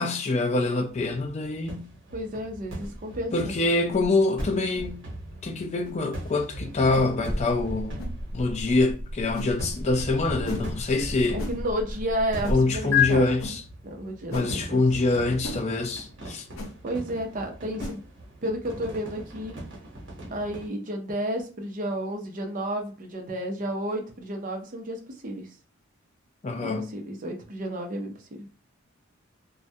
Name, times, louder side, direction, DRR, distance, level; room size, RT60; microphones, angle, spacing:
voice 1, 0.0-1.9 3.3-5.0 5.4-8.0 8.3-11.4 12.5-13.6 14.3-16.4 26.4-26.9, left 2 dB, 30° left, 0.3 m, -25 dB
sound 1, 0.9-20.7, right 1 dB, 60° right, 1.0 m, -40 dB
voice 2, 2.1-3.5 11.3-13.3 13.8-14.8 16.8-18.0 18.4-19.6 20.3-25.5 26.6-28.5, right 1 dB, 40° right, 0.5 m, -32 dB
sound 2, 2.8-3.0 3.9-4.1 4.7-4.9 5.8-6.0 6.9-7.1 8.0-8.1 9.3-9.5 10.4-10.7 11.4-11.6 12.4-12.6 13.4-13.6 14.3-14.5 15.4-15.6 16.5-16.7 17.8-18.0, equal, 75° left, 0.6 m, -36 dB
sound 3, 4.4-12.5 12.9-13.1, left 5 dB, 10° left, 0.9 m, -32 dB
2.2 x 2.1 x 2.7 m
head